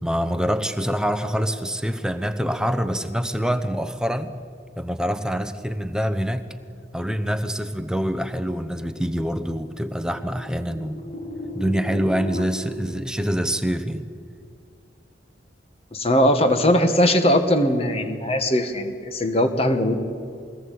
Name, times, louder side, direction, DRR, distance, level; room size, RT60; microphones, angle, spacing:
voice 1, 0.0-4.3 4.8-6.4 6.9-11.0 11.5-14.0, equal, 5° right, 9 dB, 1.0 m, -25 dB
sound 1, 8.1-12.4, left 1 dB, 65° left, 4.1 m, -37 dB
voice 2, 15.9-19.9, equal, 35° left, 7 dB, 1.9 m, -20 dB
23.0 x 18.5 x 8.7 m, 2.3 s
head